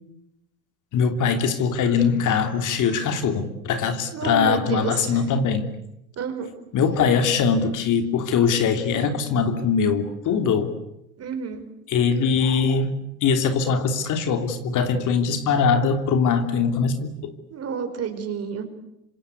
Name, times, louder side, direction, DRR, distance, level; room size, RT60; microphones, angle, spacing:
voice 1, 0.9-5.7 6.7-10.7 11.9-17.3, left 6 dB, 45° left, 7 dB, 3.2 m, -22 dB
voice 2, 4.1-4.9 6.2-6.5 11.2-11.6 17.5-18.6, right 6 dB, 35° right, 8 dB, 5.1 m, -29 dB
26.5 x 26.0 x 8.5 m, 0.83 s
hypercardioid pair, 90°, 42 cm